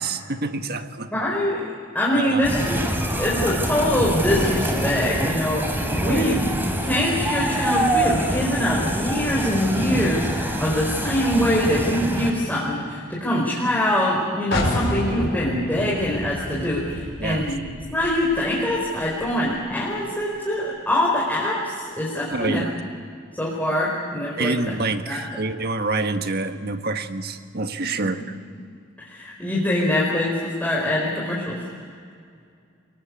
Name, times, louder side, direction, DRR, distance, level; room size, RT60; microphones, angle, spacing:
voice 1, 0.0-1.1 2.1-2.8 6.0-6.3 17.2-17.5 22.3-22.7 24.4-28.3, right 3 dB, 55° right, 7 dB, 1.5 m, -27 dB
voice 2, 1.1-1.6 1.9-2.7 3.2-6.4 6.8-22.6 23.4-24.5 25.1-25.2 29.0-31.6, left 1 dB, 10° left, -5 dB, 4.7 m, -24 dB
sound 1, 2.4-12.3, right 1 dB, 10° right, 3.3 m, -25 dB
sound 2, 14.5-20.1, left 1 dB, 60° left, 6.0 m, -30 dB
26.0 x 23.0 x 8.6 m, 2.3 s
head